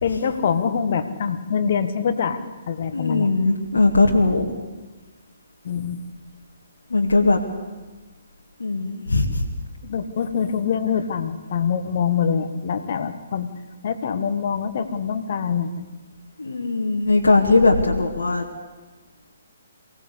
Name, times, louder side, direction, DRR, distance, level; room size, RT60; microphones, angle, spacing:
voice 1, 0.0-2.4 2.7-3.3 5.6-6.0 9.8-13.5 13.8-15.9, left 7 dB, 50° left, 8 dB, 1.8 m, -24 dB
voice 2, 2.9-4.5 6.9-7.4 8.6-9.4 16.4-18.4, left 3 dB, 75° left, 0 dB, 2.2 m, -19 dB
23.5 x 17.5 x 8.5 m, 1.2 s
figure-of-eight pair, 130°, 0 cm